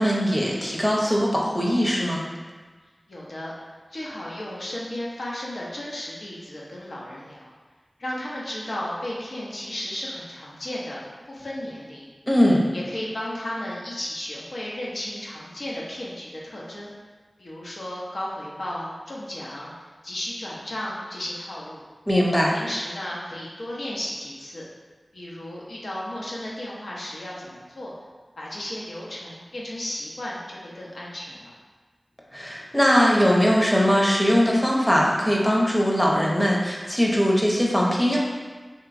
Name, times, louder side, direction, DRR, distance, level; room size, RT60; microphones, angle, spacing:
voice 1, 0.0-2.2 12.3-12.6 22.1-22.5 32.3-38.2, equal, 15° left, -3 dB, 0.6 m, -20 dB
voice 2, 3.1-3.5 3.9-7.5 8.0-11.0 11.3-12.1 12.7-16.9 17.4-19.7 20.0-21.8 22.5-24.6 25.1-27.9 28.4-31.5, left 1 dB, 90° left, -5 dB, 0.6 m, -34 dB
3.1 x 2.9 x 2.5 m, 1.4 s
wide cardioid pair, 65°, 0 cm